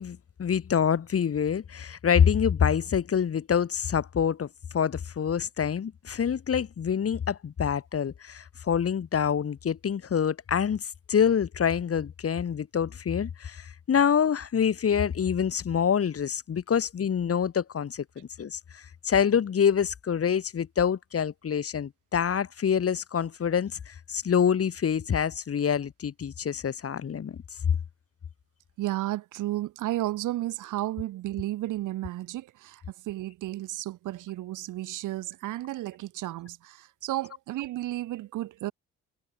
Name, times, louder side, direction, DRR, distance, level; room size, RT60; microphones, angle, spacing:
voice 1, 0.0-4.5 4.7-27.4, left 7 dB, 50° left, 4.4 m, -26 dB
voice 2, 28.8-38.7, right 15 dB, 90° right, 4.8 m, -33 dB
cardioid pair, 90°, 30 cm